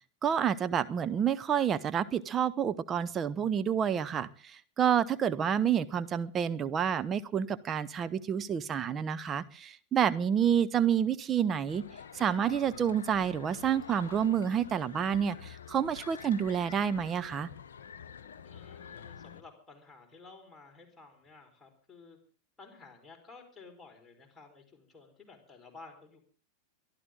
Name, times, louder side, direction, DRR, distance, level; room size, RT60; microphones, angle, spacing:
voice 1, 0.2-11.8 12.1-17.5, right 8 dB, 25° right, 13 dB, 1.0 m, -29 dB
sound 1, 11.7-19.4, left 7 dB, 65° left, 0.9 m, -47 dB
voice 2, 18.4-22.2 22.6-26.2, left 4 dB, 15° left, 1 dB, 4.6 m, -53 dB
23.5 x 12.5 x 3.9 m, 0.38 s
figure-of-eight pair, 90°, 0 cm